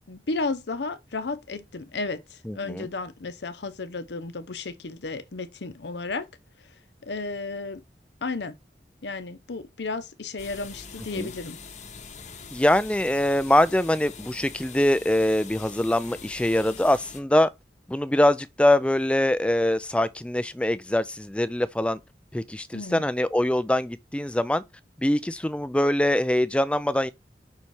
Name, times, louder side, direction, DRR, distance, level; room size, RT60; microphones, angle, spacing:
voice 1, 0.1-6.3 7.0-7.8 8.2-8.6 9.0-11.6 22.7-23.0, left 3 dB, 80° left, 0.8 m, -33 dB
voice 2, 2.5-2.9 11.2-11.3 12.5-17.5 17.9-22.0 22.3-24.6 25.0-27.1, left 1 dB, 5° left, 0.3 m, -23 dB
sound 1, 10.4-17.2, left 5 dB, 40° left, 0.9 m, -43 dB
5.6 x 4.2 x 4.7 m
head